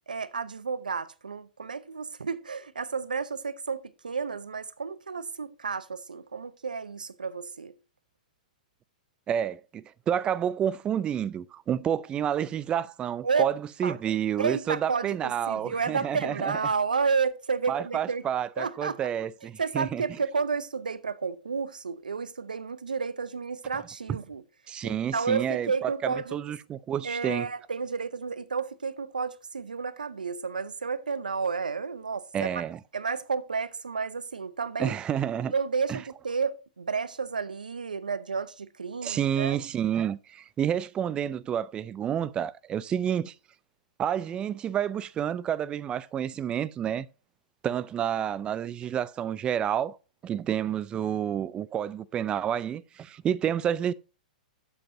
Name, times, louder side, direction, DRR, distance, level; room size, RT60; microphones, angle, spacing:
voice 1, 0.1-7.8 13.2-13.5 13.8-14.0 14.4-18.2 18.6-19.1 19.6-24.4 24.8-26.4 27.0-32.6 32.9-34.9 35.5-39.6, right 5 dB, 90° right, 0.7 m, -31 dB
voice 2, 9.3-16.5 17.7-20.0 24.7-27.5 32.3-32.8 34.8-35.5 35.9-36.0 39.0-43.3 44.0-47.1 47.6-50.0 50.2-53.9, right 9 dB, 20° right, 0.4 m, -29 dB
12.0 x 7.7 x 2.7 m
hypercardioid pair, 115°, 4 cm